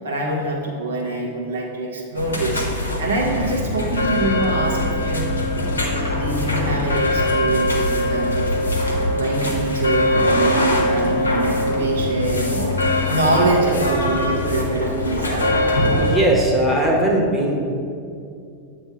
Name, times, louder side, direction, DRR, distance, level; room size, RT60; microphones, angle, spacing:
voice 1, 0.0-5.3 6.1-8.5 9.0-15.5, right 2 dB, 70° right, -2 dB, 1.1 m, -24 dB
sound 1, 2.2-16.2, left 1 dB, 75° left, 0.9 m, -22 dB
voice 2, 15.9-17.6, right 1 dB, 5° right, -3 dB, 1.1 m, -19 dB
7.8 x 3.0 x 5.7 m, 2.5 s
figure-of-eight pair, 90°, 0 cm